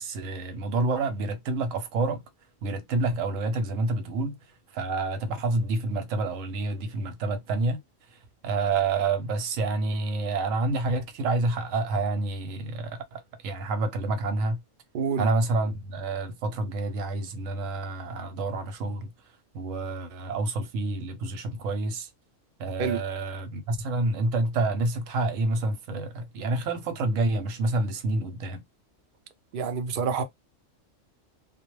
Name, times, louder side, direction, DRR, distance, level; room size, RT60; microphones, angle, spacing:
voice 1, 0.0-2.2 2.6-4.4 4.7-7.8 8.1-14.6 15.2-19.1 19.5-22.1 22.6-28.6, right 2 dB, 85° right, 1.0 m, -28 dB
voice 2, 14.9-15.3 22.8-23.0 29.5-30.2, right 6 dB, 65° right, 0.5 m, -27 dB
2.2 x 2.0 x 3.0 m
omnidirectional pair, 1.3 m